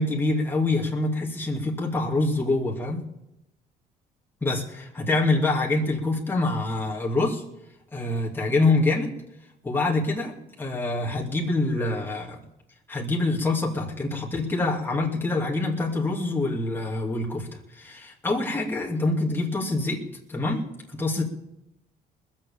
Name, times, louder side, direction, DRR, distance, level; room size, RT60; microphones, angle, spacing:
voice 1, 0.0-3.0 4.4-7.4 7.9-9.1 9.6-12.4 12.9-17.5 17.7-20.0 20.3-20.6 20.9-21.2, left 2 dB, 10° left, -3 dB, 2.7 m, -25 dB
21.0 x 7.3 x 7.2 m, 0.86 s
cardioid pair, 110°, 17 cm